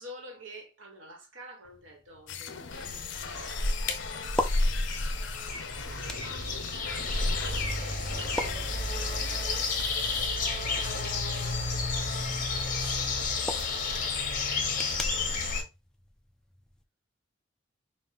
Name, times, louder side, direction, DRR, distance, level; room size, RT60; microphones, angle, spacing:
voice 1, 0.0-4.4 5.8-6.6 7.1-8.0 8.8-15.5, right 1 dB, 80° right, 1.4 m, -51 dB
sound 1, 1.6-16.8, left 1 dB, 5° left, 0.4 m, -43 dB
sound 2, 2.3-10.3, left 6 dB, 70° left, 0.6 m, -41 dB
sound 3, 2.7-15.6, left 3 dB, 45° left, 1.2 m, -31 dB
5.5 x 2.5 x 3.7 m
head